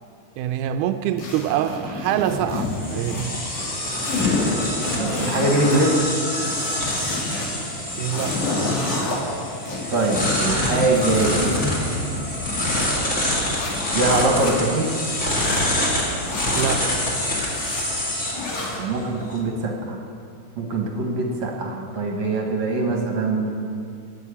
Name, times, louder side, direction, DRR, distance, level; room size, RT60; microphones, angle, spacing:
voice 1, 0.4-3.4 8.0-8.4 16.6-17.0, right 10 dB, 85° right, 8 dB, 2.1 m, -25 dB
sound 1, 1.2-3.3 3.5-5.8 6.2-7.5 7.9-9.2 9.7-12.9 13.4-14.5 15.0-15.7 16.2-16.8 17.4-17.8 18.3-18.8, left 3 dB, 80° left, 3.7 m, -29 dB
sound 2, 2.2-19.4, left 1 dB, 25° left, 2.6 m, -26 dB
voice 2, 5.0-6.1 9.9-11.6 13.9-15.0 18.8-20.0 20.6-23.5, right 2 dB, 65° right, 0 dB, 2.7 m, -22 dB
12.0 x 9.7 x 8.6 m, 2.3 s
omnidirectional pair, 3.5 m